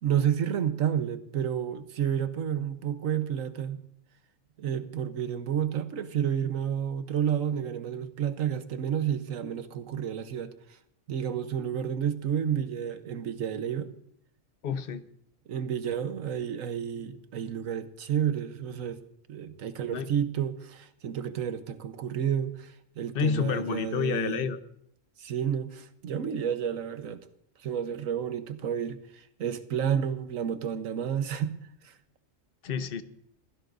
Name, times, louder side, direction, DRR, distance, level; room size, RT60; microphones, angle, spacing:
voice 1, 0.0-3.8 4.6-10.5 11.1-13.9 15.5-19.0 19.3-24.5 25.2-27.2 27.6-31.5 31.8-31.9, right 9 dB, 90° right, 1.3 m, -30 dB
voice 2, 14.6-15.0 19.9-20.1 23.1-24.6 32.6-33.0, left 7 dB, 50° left, 1.0 m, -29 dB
27.5 x 16.0 x 2.6 m
omnidirectional pair, 1.3 m